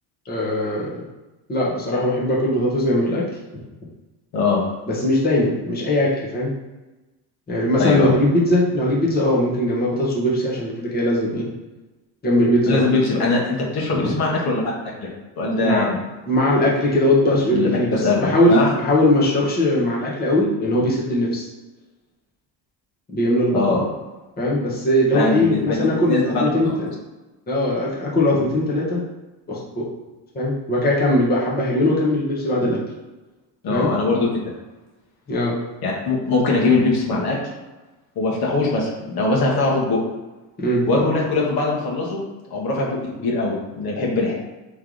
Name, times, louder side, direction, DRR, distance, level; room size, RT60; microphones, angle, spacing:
voice 1, 0.3-1.0 1.5-3.2 4.9-6.5 7.5-11.4 12.2-12.9 13.9-14.1 15.6-15.9 16.3-21.5 23.1-23.8 24.4-26.9 27.5-29.0 29.5-29.9 30.3-32.8 33.7-33.9 35.3-35.5 36.7-36.8 40.6-41.0, left 1 dB, 20° left, -5 dB, 1.1 m, -20 dB
voice 2, 7.8-8.1 12.7-14.6 15.0-15.1 15.4-16.0 17.5-18.7 23.5-23.8 25.1-25.7 26.1-26.5 33.6-34.3 35.8-37.4 38.2-40.0 40.9-42.2 42.5-44.3, left 3 dB, 50° left, -3 dB, 1.3 m, -21 dB
3.4 x 3.2 x 3.8 m, 1.1 s
supercardioid pair, 90°, 46 cm